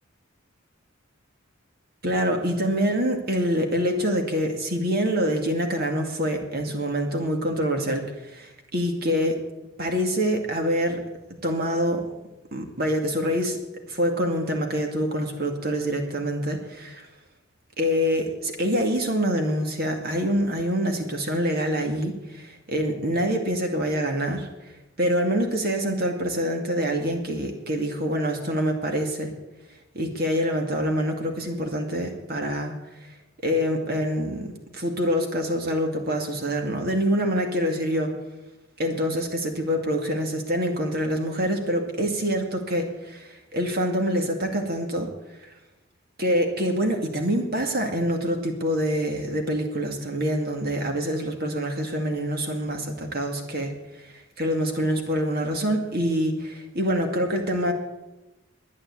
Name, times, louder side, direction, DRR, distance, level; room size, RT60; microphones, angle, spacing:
voice 1, 2.0-9.4 9.8-11.0 11.4-12.0 12.5-13.6 13.9-17.1 17.8-24.5 25.0-29.3 29.9-32.7 33.4-38.1 38.8-45.1 45.4-45.5 46.2-53.7 54.0-57.7, equal, 50° right, 3 dB, 2.2 m, -25 dB
12.5 x 9.9 x 8.4 m, 1.0 s
head